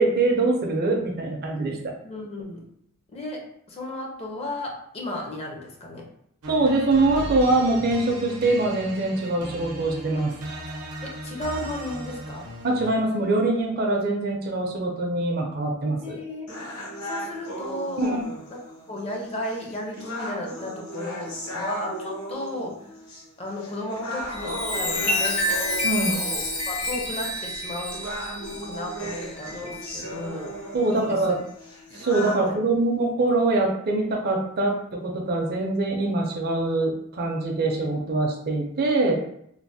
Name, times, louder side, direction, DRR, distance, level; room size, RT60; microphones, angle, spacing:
voice 1, 0.0-1.8 6.5-10.3 12.6-16.2 18.0-18.2 25.8-26.1 30.7-31.4 31.9-39.1, right 2 dB, 45° right, 1 dB, 0.5 m, -23 dB
voice 2, 2.0-2.7 3.1-6.1 11.0-12.5 16.0-16.5 17.0-18.2 18.5-18.6 18.9-23.0 23.4-25.5 26.1-28.1 28.5-30.6 30.9-31.3 32.1-32.5, left 1 dB, 30° left, -1 dB, 0.5 m, -34 dB
sound 1, 6.4-13.1, right 1 dB, 90° right, 0.6 m, -37 dB
sound 2, 16.5-32.5, equal, 70° left, 0.8 m, -37 dB
Chime, 24.2-30.2 30.8-31.0, left 1 dB, 85° left, 1.3 m, -29 dB
3.1 x 2.0 x 2.6 m, 0.72 s
head